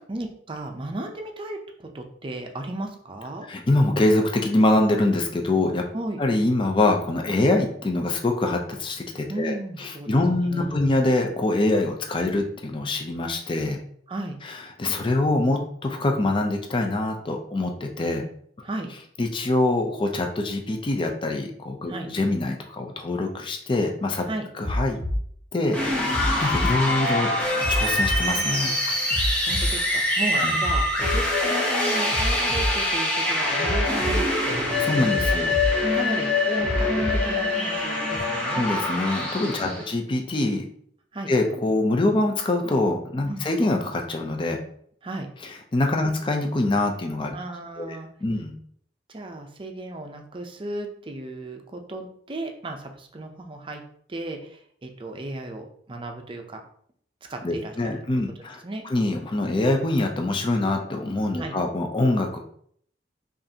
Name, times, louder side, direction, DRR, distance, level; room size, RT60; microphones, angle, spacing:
voice 1, 0.0-3.5 5.9-6.2 9.3-10.9 14.1-14.4 18.6-18.9 21.9-22.1 24.3-24.5 28.9-29.0 29.5-34.6 34.9-35.1 35.4-38.6 39.6-39.9 41.1-41.3 43.3-43.4 45.0-45.3 46.0-46.1 47.3-48.1 49.1-53.8 54.1-56.6 57.2-58.0 58.6-58.8 61.4-61.5, right 2 dB, 30° right, 4 dB, 0.5 m, -35 dB
voice 2, 3.5-5.8 6.2-13.8 14.4-18.2 19.2-24.3 24.6-25.0 25.5-27.3 27.7-28.8 30.3-30.5 34.8-35.5 38.5-40.7 41.3-44.6 45.4-47.4 47.8-48.5 57.4-62.4, left 2 dB, 30° left, 3 dB, 0.5 m, -24 dB
sound 1, 24.6-25.2 26.1-26.7 27.6-28.2 29.1-29.7 30.6-31.2 32.1-32.7 33.6-34.2 35.1-35.7 36.6-37.2 38.1-38.2, left 1 dB, 75° left, 1.0 m, -26 dB
sound 2, 25.7-39.9, left 2 dB, 10° left, 0.8 m, -24 dB
5.2 x 2.5 x 2.7 m, 0.62 s
head